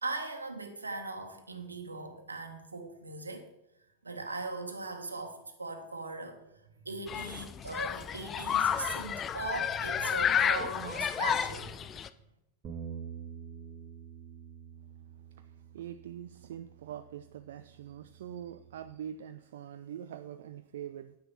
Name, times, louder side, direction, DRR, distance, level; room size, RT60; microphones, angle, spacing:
voice 1, 0.0-3.5 4.0-6.4 6.8-11.8, right 3 dB, 80° right, 6 dB, 1.4 m, -39 dB
Human group actions, 7.1-12.1, left 8 dB, 25° left, 0.5 m, -31 dB
Bass guitar, 12.6-18.9, right 7 dB, 30° right, 2.5 m, -47 dB
voice 2, 15.4-21.2, right 10 dB, 60° right, 10 dB, 0.4 m, -44 dB
9.8 x 9.4 x 4.3 m, 0.87 s
figure-of-eight pair, 90°, 0 cm